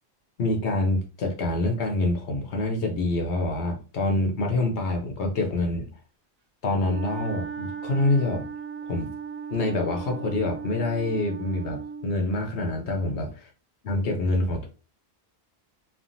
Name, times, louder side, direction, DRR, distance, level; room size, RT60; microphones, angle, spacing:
voice 1, 0.4-5.9 6.6-8.5 8.9-9.1 9.5-13.4 13.8-14.7, left 2 dB, 85° left, 2 dB, 1.0 m, -26 dB
Wind instrument woodwind instrument, 6.8-12.2, right 6 dB, 50° right, 0.5 m, -37 dB
3.3 x 2.2 x 2.6 m, 0.35 s
omnidirectional pair, 1.1 m